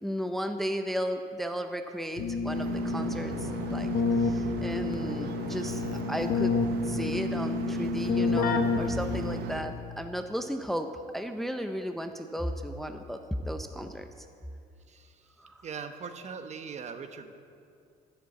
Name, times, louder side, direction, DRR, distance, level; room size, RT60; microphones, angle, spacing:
voice 1, 0.0-3.9 4.1-6.5 6.8-10.9 11.1-14.1 15.4-15.6, equal, ahead, 6 dB, 0.6 m, -34 dB
Keyboard (musical), 2.2-9.7, left 4 dB, 60° left, 1.1 m, -29 dB
sound 1, 2.5-9.6, right 9 dB, 75° right, 0.8 m, -39 dB
voice 2, 15.6-17.4, right 6 dB, 40° right, 8 dB, 0.9 m, -40 dB
13.0 x 7.4 x 8.4 m, 2.4 s
cardioid pair, 110°, 17 cm